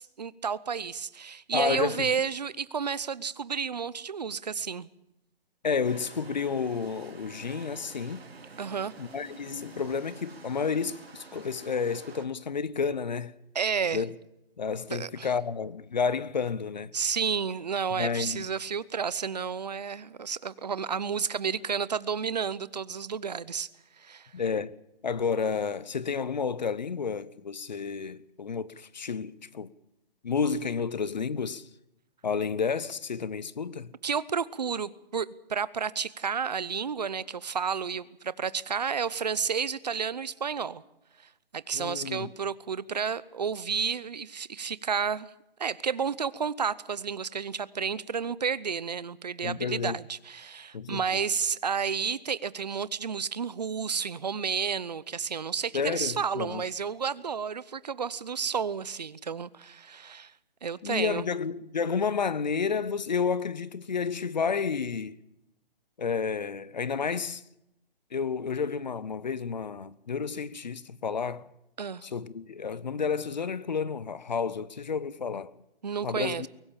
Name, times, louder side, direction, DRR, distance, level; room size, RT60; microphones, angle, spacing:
voice 1, 0.0-4.9 8.6-8.9 13.5-14.0 14.9-15.3 16.9-23.7 24.0-24.3 34.0-40.8 41.5-45.3 45.6-60.3 60.6-61.3 71.8-72.1 75.8-76.5, right 6 dB, 45° right, 0.8 m, -31 dB
voice 2, 1.5-2.1 5.6-8.2 9.0-13.3 13.9-14.1 14.6-16.9 17.9-18.5 24.3-24.7 25.0-29.7 30.2-31.7 32.2-33.9 41.7-42.3 49.4-50.0 50.7-51.2 55.7-56.6 60.8-65.2 66.0-67.4 68.1-71.5 72.0-75.5 76.0-76.5, left 5 dB, 45° left, 0.8 m, -31 dB
sound 1, 5.8-12.3, right 4 dB, 85° right, 3.5 m, -49 dB
23.0 x 18.0 x 7.3 m
hypercardioid pair, 175°, 30 cm